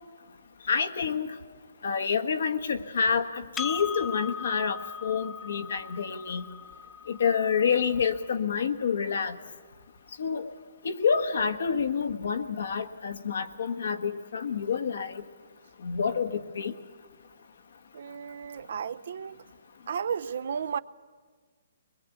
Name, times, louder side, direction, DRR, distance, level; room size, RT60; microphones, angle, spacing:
voice 1, 0.7-1.4 1.8-6.4 7.1-9.4 10.2-10.5 10.8-15.2 15.8-16.7, left 6 dB, 70° left, 1.4 m, -28 dB
Percussion, 3.6-8.4, left 7 dB, 10° left, 0.7 m, -39 dB
voice 2, 17.9-19.4 19.9-20.8, right 7 dB, 65° right, 0.6 m, -33 dB
23.0 x 21.5 x 8.2 m
hypercardioid pair, 155°, 0 cm